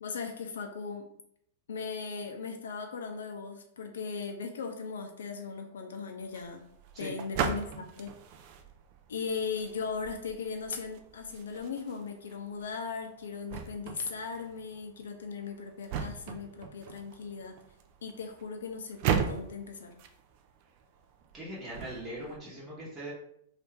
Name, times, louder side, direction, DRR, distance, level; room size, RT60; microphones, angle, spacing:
voice 1, 0.0-1.1 1.7-6.6 7.0-8.2 9.1-17.6 18.0-20.0, left 5 dB, 70° left, 4 dB, 0.4 m, -38 dB
sound 1, 6.2-22.4, right 7 dB, 50° right, 0.4 m, -39 dB
voice 2, 21.3-23.1, right 1 dB, 20° right, -8 dB, 1.0 m, -41 dB
2.6 x 2.4 x 3.3 m, 0.72 s
figure-of-eight pair, 100°, 0 cm